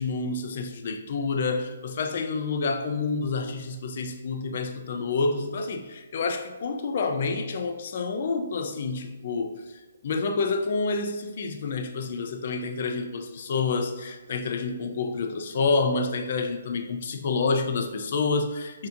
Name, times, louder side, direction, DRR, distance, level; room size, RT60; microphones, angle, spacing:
voice 1, 0.0-18.9, left 4 dB, 45° left, 6 dB, 0.4 m, -28 dB
6.5 x 2.8 x 2.5 m, 1.2 s
hypercardioid pair, 170°, 0 cm